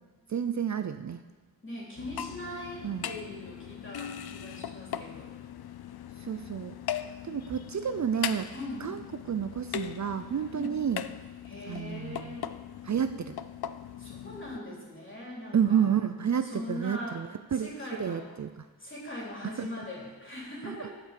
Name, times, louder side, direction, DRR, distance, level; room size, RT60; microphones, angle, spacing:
voice 1, 0.3-1.2 2.8-3.1 6.2-6.7 7.2-8.5 8.8-11.0 11.7-12.4 12.8-13.4 15.5-17.7 18.0-18.7 19.4-19.7 20.6-20.9, right 8 dB, 50° right, 9 dB, 0.4 m, -30 dB
voice 2, 1.6-5.3 8.5-8.9 10.5-10.7 11.4-12.5 14.0-15.9 16.4-17.2 17.6-18.3 18.8-20.9, left 1 dB, 30° left, -4 dB, 3.1 m, -40 dB
sound 1, 2.0-14.6, left 10 dB, 75° left, 0.5 m, -40 dB
11.5 x 5.5 x 6.5 m, 1.3 s
wide cardioid pair, 105°, 38 cm